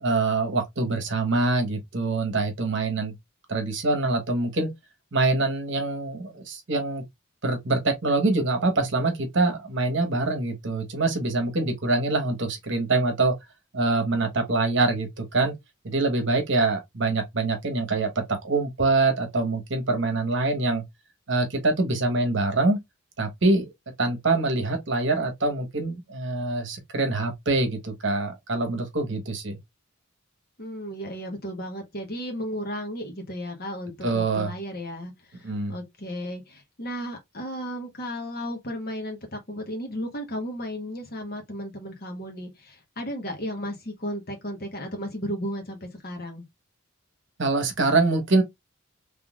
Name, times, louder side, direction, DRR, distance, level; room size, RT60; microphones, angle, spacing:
voice 1, 0.0-3.1 3.5-4.7 5.1-7.0 7.4-13.3 13.7-15.5 15.8-20.8 21.3-22.8 23.2-23.7 24.0-29.6 34.0-34.5 35.4-35.7 47.4-48.4, right 3 dB, 60° right, 1.1 m, -24 dB
voice 2, 30.6-46.4, equal, 45° left, 1.1 m, -34 dB
3.8 x 3.3 x 2.4 m
head